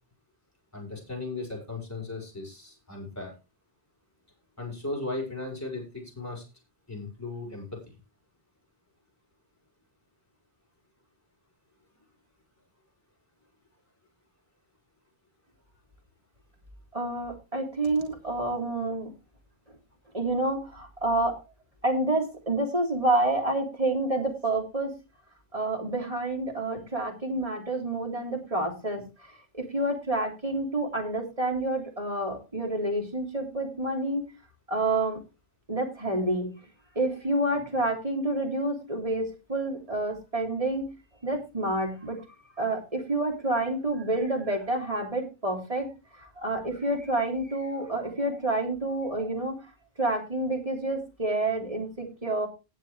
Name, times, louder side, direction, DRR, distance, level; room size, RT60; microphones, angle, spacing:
voice 1, 0.7-3.3 4.6-6.4 6.9-7.8, left 2 dB, 15° left, 0 dB, 5.2 m, -36 dB
voice 2, 16.9-19.1 20.1-21.4 21.8-25.0 25.5-29.0 29.5-34.2 34.7-35.2 35.7-36.5 36.9-40.9 41.2-42.2 42.6-49.6 50.0-52.5, right 2 dB, 35° right, 1 dB, 3.4 m, -28 dB
19.0 x 6.6 x 3.3 m, 0.28 s
omnidirectional pair, 1.1 m